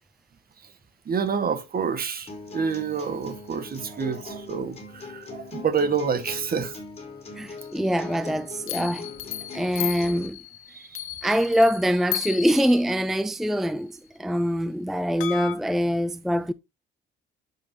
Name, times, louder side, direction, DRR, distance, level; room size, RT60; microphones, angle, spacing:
voice 1, 1.0-6.8 10.7-11.0, right 6 dB, 50° right, 1.7 m, -28 dB
sound 1, 2.3-10.3, left 3 dB, 30° left, 4.3 m, -41 dB
sound 2, 2.8-3.0 7.6-8.2 8.7-13.7 15.2-15.6, left 14 dB, 90° left, 0.9 m, -35 dB
voice 2, 7.3-9.1 9.5-10.4 11.2-16.5, equal, ahead, 0.5 m, -24 dB
9.9 x 7.5 x 2.8 m
cardioid pair, 90°, 20 cm